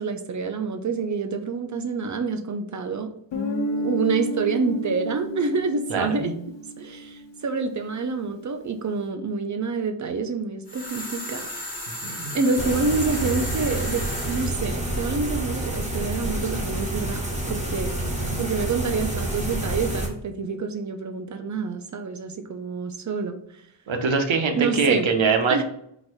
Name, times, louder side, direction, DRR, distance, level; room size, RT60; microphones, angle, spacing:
voice 1, 0.0-3.1 3.8-6.3 6.8-11.5 12.3-17.9 18.4-23.4 24.5-25.1 25.5-25.6, right 4 dB, 40° right, 6 dB, 0.6 m, -27 dB
Guitar, 3.3-7.9, equal, 70° left, 0.9 m, -31 dB
voice 2, 5.9-6.3 12.0-12.4 18.0-18.4 23.9-25.6, right 5 dB, 85° right, 4 dB, 0.8 m, -24 dB
sound 1, 10.7-14.6, left 1 dB, 20° left, 1.5 m, -35 dB
sound 2, 12.6-20.1, right 1 dB, 15° right, 1.0 m, -28 dB
4.0 x 2.6 x 4.5 m, 0.73 s
wide cardioid pair, 105°, 45 cm